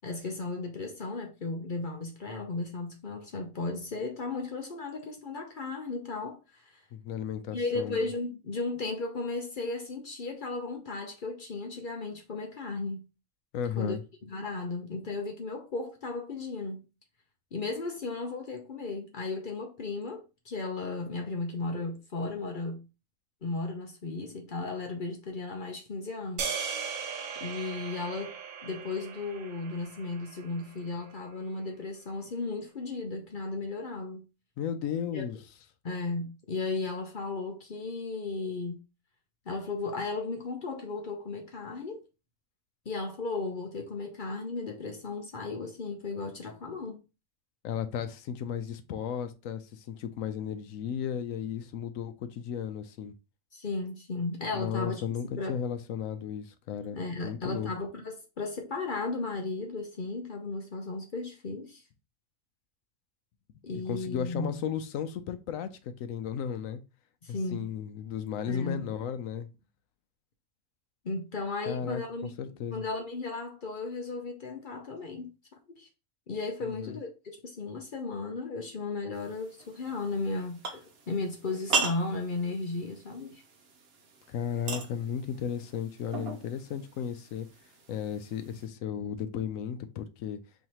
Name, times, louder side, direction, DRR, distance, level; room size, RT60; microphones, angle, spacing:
voice 1, 0.0-6.8 7.5-13.0 13.8-14.0 14.2-16.8 17.5-22.9 23.4-26.5 26.9-27.0 27.4-28.4 28.6-34.2 35.1-35.2 35.8-38.8 39.5-42.0 42.9-47.0 53.5-55.0 55.4-55.6 56.9-61.8 63.6-64.6 67.2-67.7 68.5-68.9 71.0-72.3 72.7-75.3 75.8-75.9 76.3-83.4, left 3 dB, 45° left, 0.7 m, -35 dB
voice 2, 6.9-8.0 13.5-14.0 34.6-35.4 47.6-53.1 54.5-57.0 57.2-57.7 63.9-66.8 67.3-69.5 71.7-72.8 76.6-77.0 84.3-87.5 87.9-90.4, left 8 dB, 75° left, 0.9 m, -35 dB
sound 1, 26.4-30.7, right 6 dB, 70° right, 1.2 m, -38 dB
sound 2, 79.1-88.7, right 5 dB, 50° right, 0.9 m, -38 dB
4.6 x 3.2 x 2.9 m
omnidirectional pair, 1.5 m